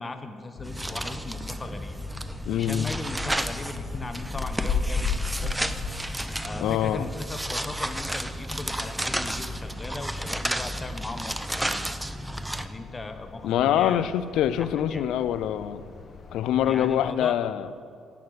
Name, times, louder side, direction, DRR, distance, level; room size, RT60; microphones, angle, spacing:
voice 1, 0.0-2.0 2.5-5.8 6.4-11.9 12.5-14.1 14.6-15.0 16.6-17.3, left 3 dB, 25° left, 7 dB, 1.2 m, -38 dB
sound 1, 0.6-17.1, left 5 dB, 50° left, 1.0 m, -37 dB
sound 2, 0.6-12.7, right 1 dB, 10° right, 0.6 m, -32 dB
voice 2, 2.5-2.9 6.6-7.1 13.4-15.8 16.3-17.7, left 10 dB, 85° left, 15 dB, 0.5 m, -25 dB
10.5 x 9.5 x 8.0 m, 2.3 s
cardioid pair, 90°, 0 cm